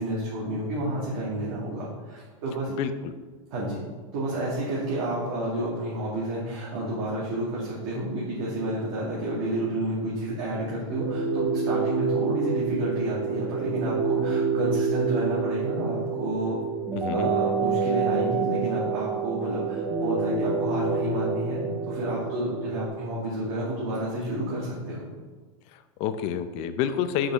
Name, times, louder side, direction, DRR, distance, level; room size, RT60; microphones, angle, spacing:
voice 1, 0.0-2.7 3.5-3.8 4.1-16.6 17.1-25.0, right 1 dB, 50° right, -6 dB, 2.3 m, -30 dB
voice 2, 2.8-3.1 16.9-17.3 25.7-27.3, left 9 dB, 35° left, 10 dB, 0.5 m, -29 dB
sound 1, 10.9-22.9, right 5 dB, 15° right, 1.2 m, -28 dB
6.3 x 5.7 x 6.4 m, 1.4 s
supercardioid pair, 155°, 18 cm